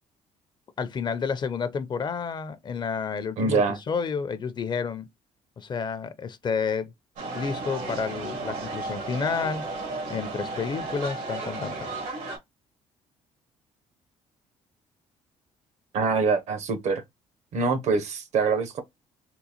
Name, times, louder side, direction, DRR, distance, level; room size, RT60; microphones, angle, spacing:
voice 1, 0.8-5.1 5.6-6.9 7.4-9.6 10.1-11.9, left 5 dB, 35° left, 0.4 m, -30 dB
voice 2, 3.4-3.8 15.9-17.0 17.5-18.8, right 4 dB, 60° right, 0.7 m, -24 dB
sound 1, 7.2-12.4, right 3 dB, 85° right, 1.4 m, -34 dB
3.7 x 2.3 x 2.8 m
cardioid pair, 95°, 13 cm